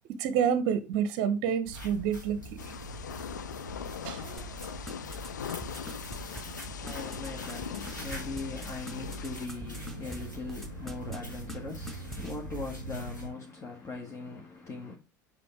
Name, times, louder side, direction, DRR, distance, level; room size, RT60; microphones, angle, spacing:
voice 1, 0.1-2.7 4.0-4.6, right 8 dB, 50° right, 0.8 m, -29 dB
sound 1, 1.6-13.3, right 1 dB, 90° left, 3.1 m, -42 dB
Thunder / Rain, 2.6-9.5, left 8 dB, 70° left, 0.5 m, -41 dB
sound 2, 4.4-10.2 10.5-11.2 11.5-11.6 11.9-12.3, equal, ahead, 1.4 m, -42 dB
voice 2, 6.3-15.0, left 3 dB, 30° left, 1.6 m, -40 dB
7.7 x 5.3 x 3.4 m
figure-of-eight pair, 75°, 10 cm